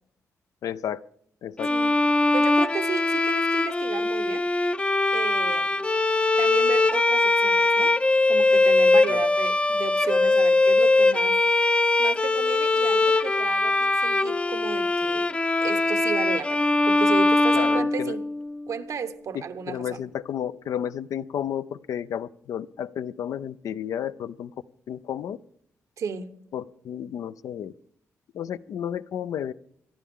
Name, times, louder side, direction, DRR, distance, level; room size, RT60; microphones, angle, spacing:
voice 1, 0.6-1.0 1.4-1.7 9.1-9.2 17.5-18.2 19.3-24.5 24.9-25.4 26.5-27.7 28.3-29.5, left 9 dB, 80° left, 0.5 m, -32 dB
Bowed string instrument, 1.6-18.6, left 2 dB, 20° left, 0.5 m, -21 dB
voice 2, 1.6-2.0 2.3-4.5 5.1-5.8 6.4-7.9 8.3-11.4 12.0-15.3 15.6-18.2 18.7-20.0 26.0-26.3, right 6 dB, 70° right, 1.1 m, -34 dB
24.0 x 11.0 x 3.7 m
cardioid pair, 80°, 6 cm